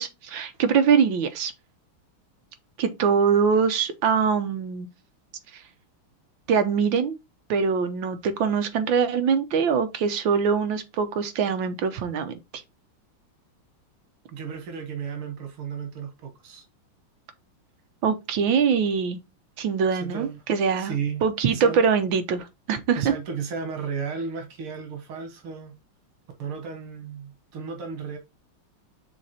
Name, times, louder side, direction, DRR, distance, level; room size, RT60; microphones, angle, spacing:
voice 1, 0.0-1.5 2.8-4.9 5.5-5.6 6.5-7.2 7.5-12.6 18.0-19.2 19.6-20.9 21.2-23.1, right 6 dB, 70° right, 1.6 m, -23 dB
voice 2, 14.3-16.7 20.0-20.4 20.8-21.2 21.5-21.8 23.0-25.8 26.4-28.2, right 6 dB, 90° right, 2.2 m, -34 dB
6.3 x 3.7 x 4.2 m
omnidirectional pair, 2.3 m